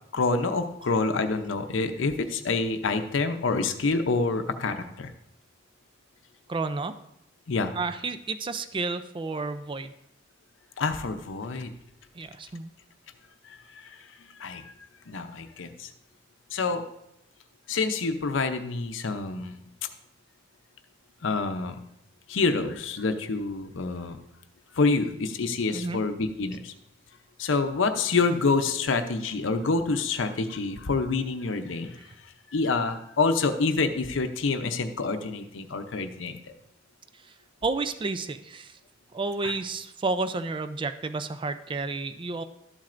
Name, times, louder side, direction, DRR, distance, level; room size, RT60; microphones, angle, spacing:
voice 1, 0.1-5.1 7.5-7.7 10.8-11.7 13.4-14.0 14.4-14.7 15.1-15.9 16.5-16.8 17.7-19.6 21.2-21.8 22.3-24.2 24.7-26.7 27.4-32.0 32.5-36.4 39.4-39.5, left 3 dB, 80° left, 7 dB, 0.6 m, -27 dB
voice 2, 6.5-6.9 7.7-9.9 12.1-12.7 25.7-26.0 37.2-37.3 37.6-38.8 39.1-42.4, right 3 dB, 25° right, 11 dB, 0.4 m, -31 dB
12.0 x 7.4 x 2.5 m, 0.79 s
head